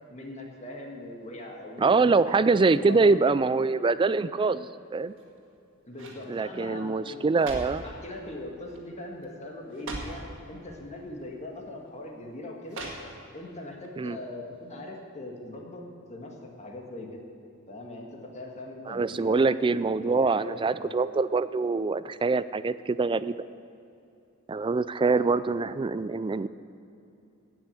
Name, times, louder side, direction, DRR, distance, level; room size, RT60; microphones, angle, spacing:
voice 1, 0.1-2.2 2.5-3.1 5.9-7.2 7.7-12.9 13.3-15.8 16.1-17.2 17.7-19.5 20.0-21.0 25.1-25.3, left 1 dB, 30° left, 0 dB, 1.8 m, -41 dB
voice 2, 1.8-5.1 6.3-7.8 14.0-14.2 18.9-23.4 24.5-26.5, right 4 dB, 25° right, 16 dB, 0.3 m, -24 dB
sound 1, 5.1-5.5 5.9-6.3 7.1-7.9 8.7-8.9 9.2-9.3 9.7-10.3 11.2-11.3 12.7-13.4 13.8-13.9, right 2 dB, 60° right, 2.2 m, -40 dB
17.0 x 6.3 x 8.5 m, 2.7 s
head